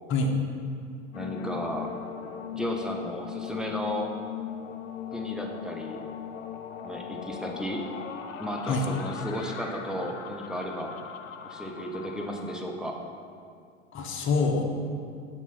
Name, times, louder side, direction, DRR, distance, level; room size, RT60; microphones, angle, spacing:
sound 1, 1.1-12.6, left 9 dB, 75° left, 0.6 m, -39 dB
voice 1, 1.1-1.9 2.5-4.1 5.1-6.0 6.8-7.8 8.4-10.9 11.4-13.0, equal, ahead, 0 dB, 0.6 m, -34 dB
voice 2, 13.9-14.6, left 3 dB, 30° left, 2 dB, 0.9 m, -25 dB
6.1 x 4.0 x 5.8 m, 2.3 s
figure-of-eight pair, 85°, 39 cm